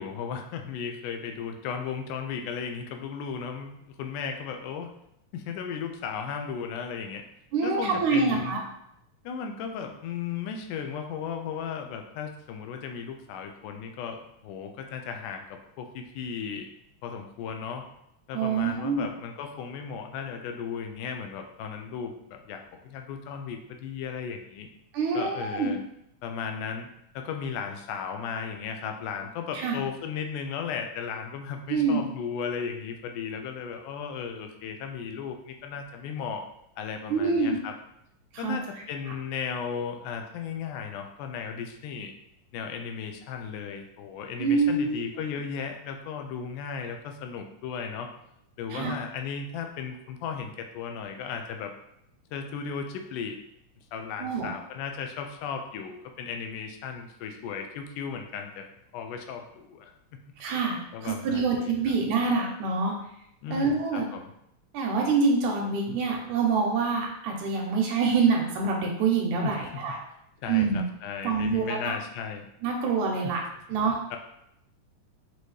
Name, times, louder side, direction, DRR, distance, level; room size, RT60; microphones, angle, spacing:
voice 1, 0.0-4.9 5.3-7.2 7.6-8.6 9.2-16.7 17.0-17.9 18.3-24.7 25.1-25.8 26.2-26.9 27.1-36.5 36.8-37.8 38.4-42.1 42.5-48.1 48.6-51.7 52.3-53.4 53.9-58.7 58.9-59.9 60.2-60.3 60.9-62.0 63.4-64.3 69.4-69.7 70.4-72.5 73.2-73.3 74.1-74.2, left 6 dB, 90° left, 4 dB, 2.1 m, -35 dB
voice 2, 7.5-8.6 18.3-19.1 24.9-25.7 29.5-29.8 31.7-32.0 37.1-37.6 38.4-38.6 44.4-45.0 48.7-48.9 54.2-54.5 60.4-62.9 63.5-64.1 64.7-70.0 70.5-70.8 71.2-72.0 72.6-73.4 73.7-74.0, right 4 dB, 80° right, 0 dB, 2.0 m, -26 dB
6.1 x 2.7 x 3.1 m, 0.79 s
omnidirectional pair, 3.6 m